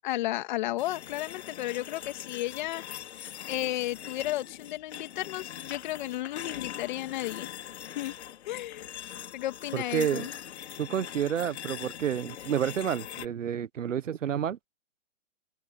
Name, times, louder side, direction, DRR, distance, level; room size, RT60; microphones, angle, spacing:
voice 1, 0.0-2.8 3.5-7.5 8.0-8.1 8.5-8.9 9.3-10.3, left 15 dB, 40° left, 2.3 m, -33 dB
sound 1, 0.8-13.3, left 10 dB, 60° left, 2.6 m, -42 dB
voice 2, 9.7-10.3 10.8-14.7, right 9 dB, 75° right, 1.4 m, -30 dB
open air
hypercardioid pair, 155°, 38 cm